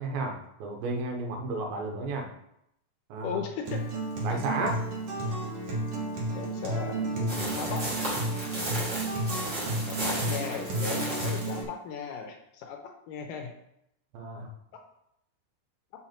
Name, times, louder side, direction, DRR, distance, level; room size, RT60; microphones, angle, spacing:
voice 1, 0.0-2.3 3.1-3.4 4.2-4.8 7.2-7.5 14.1-14.5, right 2 dB, 85° right, 2 dB, 2.9 m, -33 dB
voice 2, 3.2-3.8 6.3-7.0 7.5-7.8 9.9-13.5, left 6 dB, 80° left, 4 dB, 2.1 m, -37 dB
Acoustic guitar, 3.6-11.6, right 2 dB, 55° right, 2.2 m, -32 dB
sound 1, 7.3-11.6, right 1 dB, 35° right, 1.2 m, -34 dB
6.4 x 5.8 x 4.4 m, 0.79 s
omnidirectional pair, 4.1 m